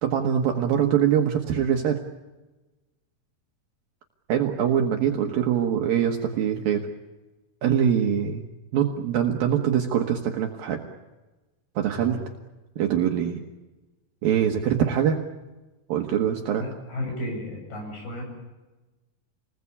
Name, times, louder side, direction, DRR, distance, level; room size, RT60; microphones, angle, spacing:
voice 1, 0.0-2.0 4.3-6.9 7.6-8.4 8.7-10.8 11.8-12.2 12.8-13.4 14.2-15.2 15.9-16.6, right 9 dB, 65° right, 3 dB, 2.9 m, -23 dB
voice 2, 16.6-18.2, left 1 dB, 65° left, 1 dB, 9.8 m, -33 dB
28.0 x 20.5 x 8.5 m, 1.2 s
omnidirectional pair, 4.7 m